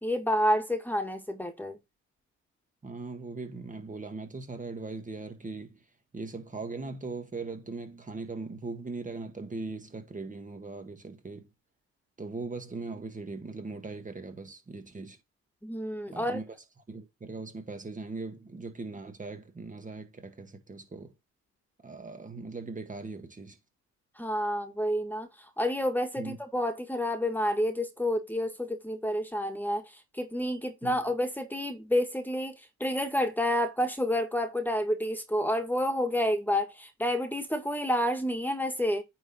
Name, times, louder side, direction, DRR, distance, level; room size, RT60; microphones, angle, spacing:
voice 1, 0.0-1.8 15.6-16.4 24.2-25.3 25.6-29.8 30.1-32.6 32.8-39.0, equal, 5° left, 1.9 m, -29 dB
voice 2, 2.8-5.9 6.1-11.5 12.2-15.2 16.1-16.5 16.9-21.1 21.8-23.6 26.2-26.4 30.8-31.0, right 3 dB, 25° right, 1.8 m, -39 dB
9.4 x 3.9 x 4.3 m
cardioid pair, 90°, 30 cm